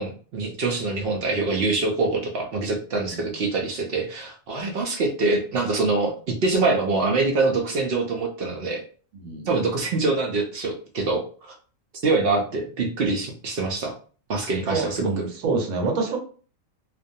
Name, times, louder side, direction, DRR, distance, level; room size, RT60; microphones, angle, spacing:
voice 1, 0.0-8.8 9.5-11.6 12.0-13.9 14.3-15.1, right 3 dB, 65° right, 1 dB, 0.6 m, -24 dB
voice 2, 9.1-9.5 14.7-16.2, right 4 dB, 80° right, 2 dB, 1.2 m, -27 dB
2.5 x 2.2 x 2.6 m, 0.40 s
omnidirectional pair, 1.4 m